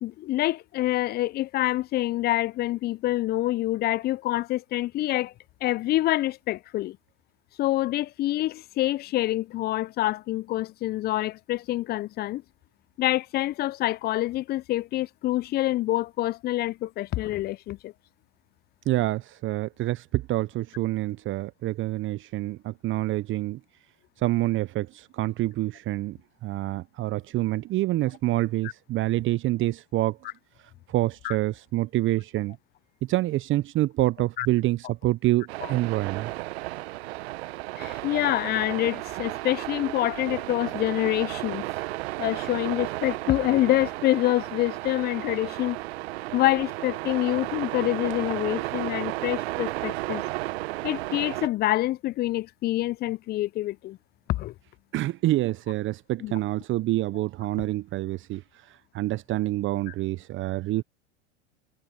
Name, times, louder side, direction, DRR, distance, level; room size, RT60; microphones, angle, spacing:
voice 1, 0.0-5.3 5.6-7.0 7.6-12.4 13.0-17.9 31.2-31.4 34.4-34.5 35.6-35.7 37.8-41.7 42.2-45.8 46.3-50.2 50.8-54.0 54.3-54.5 56.2-56.3 59.9-60.0, left 16 dB, 25° left, 0.6 m, -26 dB
voice 2, 18.9-23.6 24.2-30.2 30.9-32.6 33.0-36.3 46.2-46.3 54.9-60.8, right 16 dB, 35° right, 1.0 m, -27 dB
sound 1, 35.5-51.5, right 20 dB, 60° right, 1.5 m, -33 dB
hypercardioid pair, 95°, 36 cm